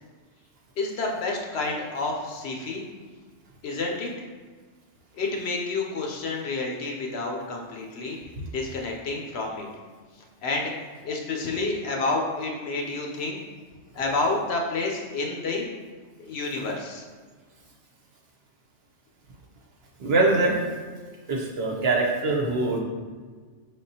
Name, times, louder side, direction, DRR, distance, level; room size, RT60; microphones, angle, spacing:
voice 1, 0.8-2.8 3.6-4.1 5.1-8.2 8.5-9.7 10.4-10.7 11.0-13.4 13.9-15.7 16.2-17.0, left 3 dB, 65° left, 0 dB, 0.8 m, -29 dB
voice 2, 20.0-20.6 21.3-22.8, right 2 dB, 60° right, -1 dB, 0.9 m, -23 dB
5.2 x 3.5 x 2.7 m, 1.5 s
omnidirectional pair, 1.3 m